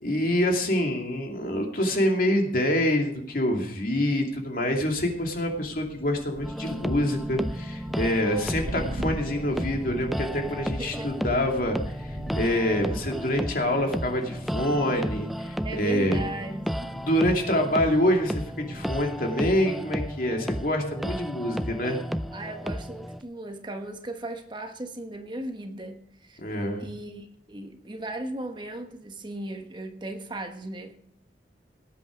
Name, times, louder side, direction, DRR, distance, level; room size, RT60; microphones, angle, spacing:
voice 1, 0.0-16.2 16.9-22.0 26.4-26.8, left 1 dB, 50° left, 2 dB, 2.6 m, -26 dB
Thunder, 4.6-19.2, equal, 55° right, 5.7 m, -42 dB
sound 1, 6.4-23.2, equal, ahead, 0.4 m, -33 dB
voice 2, 10.5-11.1 15.6-17.0 22.3-26.4 26.8-30.9, right 1 dB, 25° right, 5 dB, 1.2 m, -37 dB
18.5 x 8.4 x 5.1 m, 0.71 s
head